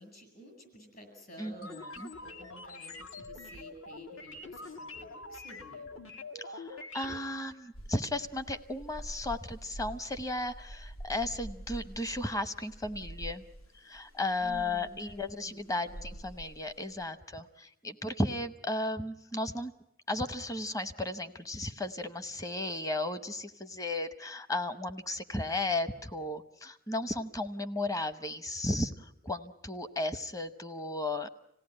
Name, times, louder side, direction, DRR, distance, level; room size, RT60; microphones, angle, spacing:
voice 1, 0.0-5.9 14.4-16.2, right 1 dB, 45° left, 4 dB, 7.9 m, -52 dB
voice 2, 1.4-2.1 6.4-13.4 13.7-19.7 20.1-31.3, left 2 dB, 15° left, 11 dB, 0.9 m, -35 dB
sound 1, 1.6-7.5, left 2 dB, 70° left, 1.7 m, -45 dB
sound 2, 7.7-17.0, right 1 dB, 85° left, 1.4 m, -46 dB
26.5 x 17.0 x 9.8 m, 0.83 s
head